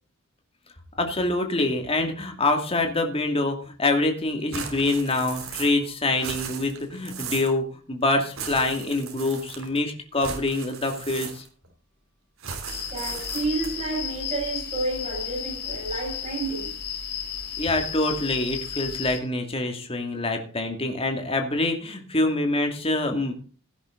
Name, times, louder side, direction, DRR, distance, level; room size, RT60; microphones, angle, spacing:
voice 1, 1.0-11.4 17.6-23.3, left 2 dB, 25° left, 2.4 m, -25 dB
sound 1, 4.5-5.9 6.1-7.6 8.3-9.8 10.2-11.7 12.4-13.9, right 6 dB, 70° right, 3.3 m, -37 dB
sound 2, 12.7-19.2, left 8 dB, 50° left, 2.6 m, -33 dB
voice 2, 12.9-16.7, right 3 dB, 30° right, 6.9 m, -30 dB
16.5 x 9.9 x 3.9 m
head